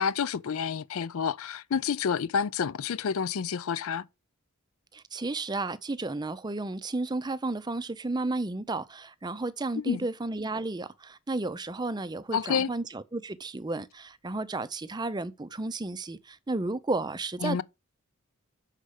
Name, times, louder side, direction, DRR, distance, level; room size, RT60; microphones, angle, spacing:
voice 1, 0.0-4.1 9.9-10.0 12.3-12.7 17.4-17.6, left 6 dB, 70° left, 0.4 m, -29 dB
voice 2, 4.9-17.6, right 2 dB, 20° right, 0.5 m, -33 dB
6.5 x 5.0 x 6.4 m
head